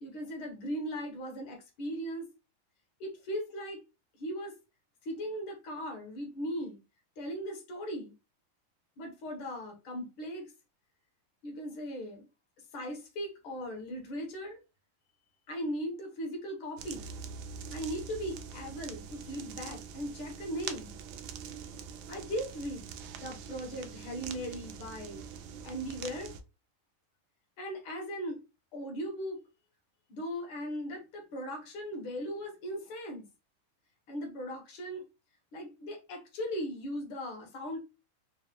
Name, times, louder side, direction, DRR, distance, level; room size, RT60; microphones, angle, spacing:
voice 1, 0.0-2.3 3.0-3.8 4.2-4.5 5.0-6.8 7.2-8.1 9.0-10.5 11.4-12.3 12.7-14.6 15.5-17.1 17.7-21.0 22.1-22.9 23.2-25.2 25.6-26.3 27.6-28.4 28.7-29.4 30.1-33.2 34.1-35.0 35.5-37.8, equal, 80° left, 1.9 m, -38 dB
sound 1, 16.8-26.4, right 6 dB, 80° right, 0.9 m, -44 dB
4.6 x 2.2 x 2.9 m
omnidirectional pair, 2.3 m